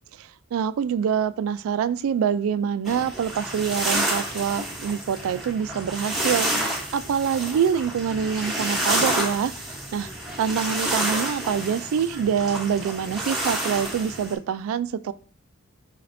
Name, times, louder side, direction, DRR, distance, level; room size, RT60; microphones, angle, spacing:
voice 1, 0.2-9.5 9.9-10.1 10.4-15.1, right 7 dB, 85° right, 0.3 m, -25 dB
sound 1, 2.8-14.3, right 1 dB, ahead, 0.9 m, -29 dB
4.8 x 3.3 x 2.6 m
head